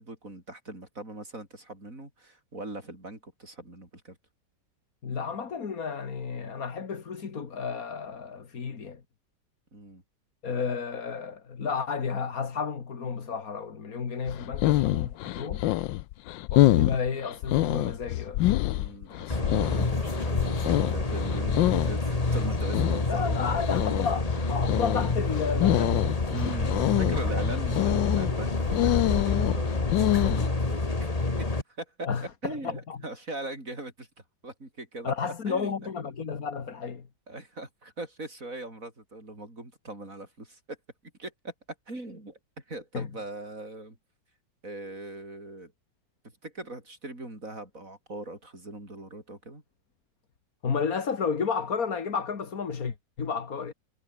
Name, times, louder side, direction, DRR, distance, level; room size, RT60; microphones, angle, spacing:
voice 1, 0.0-4.2 9.7-10.0 18.7-23.7 26.3-31.1 31.4-31.5 31.8-32.1 32.4-34.1 34.4-35.1 35.5-35.9 37.3-40.8 41.2-41.5 41.9-44.0 44.6-45.7 46.4-49.6, right 2 dB, 45° right, 7.4 m, -40 dB
voice 2, 5.0-9.0 10.4-15.7 16.5-18.4 23.1-26.0 32.0-33.0 35.0-37.1 42.9-43.1 50.6-53.7, left 6 dB, 50° left, 2.3 m, -32 dB
sound 1, 14.3-30.5, left 16 dB, 90° left, 1.3 m, -26 dB
sound 2, 19.3-31.6, left 2 dB, 20° left, 1.9 m, -28 dB
omnidirectional pair, 2.0 m